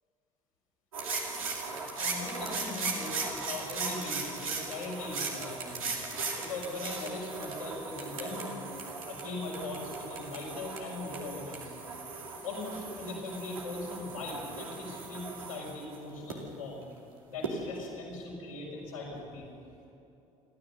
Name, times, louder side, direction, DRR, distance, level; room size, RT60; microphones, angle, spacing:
sound 1, 0.9-16.3 17.4-17.5, right 4 dB, 80° right, 2.6 m, -38 dB
voice 1, 2.0-5.9 6.4-8.6 9.1-11.7 12.4-16.8 17.3-19.5, left 3 dB, 80° left, -4 dB, 5.3 m, -40 dB
29.0 x 13.5 x 6.6 m, 2.9 s
figure-of-eight pair, 55°, 18 cm